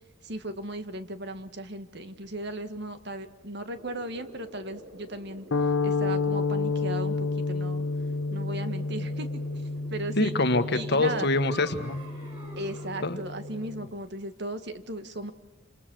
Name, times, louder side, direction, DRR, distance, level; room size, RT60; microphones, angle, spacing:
voice 1, 0.2-5.4 5.8-7.9 8.3-9.4 9.9-10.3 10.7-11.3 12.6-15.3, right 1 dB, 60° right, 9 dB, 1.8 m, -36 dB
sound 1, 3.7-13.8, right 1 dB, 75° right, 6.1 m, -48 dB
sound 2, 5.5-13.9, left 3 dB, 85° left, 1.0 m, -30 dB
voice 2, 10.2-12.0 13.0-13.2, left 2 dB, 55° left, 9 dB, 1.5 m, -25 dB
sound 3, 11.0-13.2, right 2 dB, 25° right, 7.1 m, -47 dB
29.0 x 26.5 x 6.4 m, 0.97 s
head